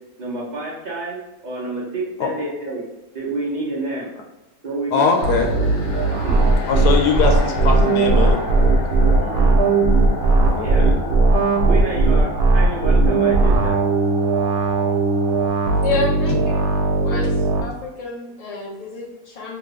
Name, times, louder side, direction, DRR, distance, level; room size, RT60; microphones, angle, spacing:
voice 1, 0.2-2.8 3.1-4.1 4.6-5.8 6.1-6.5 9.2-9.6 10.6-11.1 11.6-13.8 16.1-16.2, right 2 dB, 55° right, -5 dB, 0.5 m, -29 dB
voice 2, 4.9-5.5 6.7-8.4 10.4-10.9, left 5 dB, 85° left, 2 dB, 1.2 m, -21 dB
sound 1, 5.1-15.5, left 3 dB, 70° left, 0.8 m, -33 dB
sound 2, 5.2-17.6, right 3 dB, 90° right, 1.2 m, -18 dB
voice 3, 15.8-16.7 17.0-17.3 17.6-19.6, left 3 dB, 45° left, -4 dB, 0.5 m, -28 dB
2.9 x 2.5 x 3.2 m, 0.98 s
omnidirectional pair, 1.7 m